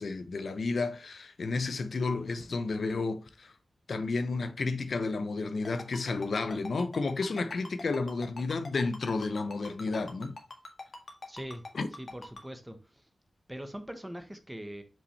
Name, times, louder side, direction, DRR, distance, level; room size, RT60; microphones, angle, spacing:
voice 1, 0.0-3.5 3.9-10.4 11.7-11.9, left 3 dB, 70° left, 0.7 m, -32 dB
Ringtone, 5.6-12.4, left 2 dB, 45° left, 1.5 m, -43 dB
voice 2, 11.3-11.6 12.0-13.0 13.5-14.8, equal, 10° right, 1.1 m, -42 dB
5.8 x 5.2 x 3.2 m
wide cardioid pair, 100°, 0 cm